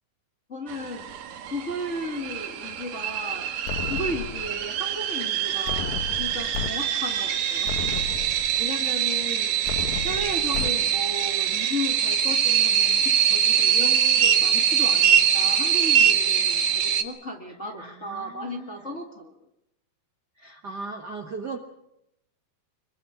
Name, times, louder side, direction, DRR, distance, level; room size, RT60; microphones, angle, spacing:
voice 1, 0.5-1.1 1.5-3.5 3.9-8.1 8.6-9.6 10.0-19.3, left 1 dB, 35° left, 2 dB, 1.2 m, -35 dB
sound 1, 0.7-17.0, right 8 dB, 65° right, 2.9 m, -23 dB
sound 2, 3.7-4.7 5.7-6.7 7.1-7.2 7.6-8.7 9.7-10.7, left 8 dB, 65° left, 2.0 m, -33 dB
voice 2, 17.8-18.9 20.4-21.6, right 4 dB, 85° right, 4 dB, 0.9 m, -38 dB
26.0 x 23.5 x 6.0 m, 0.83 s
omnidirectional pair, 4.5 m